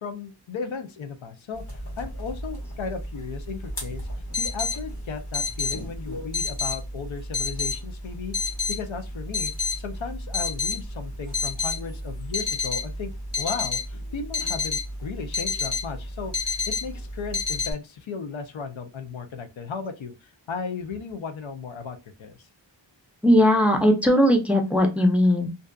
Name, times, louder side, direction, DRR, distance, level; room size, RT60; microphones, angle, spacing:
voice 1, 0.0-4.1 4.4-8.3 8.7-22.5, left 5 dB, 80° left, 0.5 m, -35 dB
sound 1, 1.6-17.7, left 4 dB, 65° left, 1.3 m, -30 dB
voice 2, 23.2-25.5, equal, 5° right, 0.4 m, -18 dB
2.6 x 2.3 x 2.2 m
wide cardioid pair, 60°, 46 cm